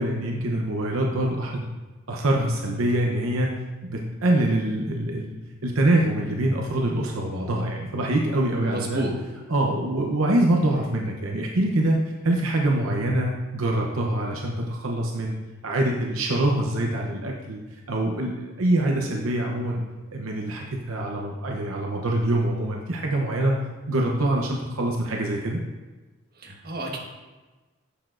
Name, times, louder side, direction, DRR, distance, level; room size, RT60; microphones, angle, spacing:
voice 1, 0.0-1.6 2.1-3.5 3.8-5.4 5.6-9.0 9.5-12.0 12.2-15.4 15.6-17.6 17.9-19.8 20.1-23.6 23.9-25.6, right 1 dB, 80° right, 0 dB, 0.8 m, -24 dB
voice 2, 8.6-9.1 26.3-27.0, right 2 dB, 45° right, -1 dB, 1.4 m, -30 dB
9.9 x 6.9 x 2.5 m, 1.2 s
head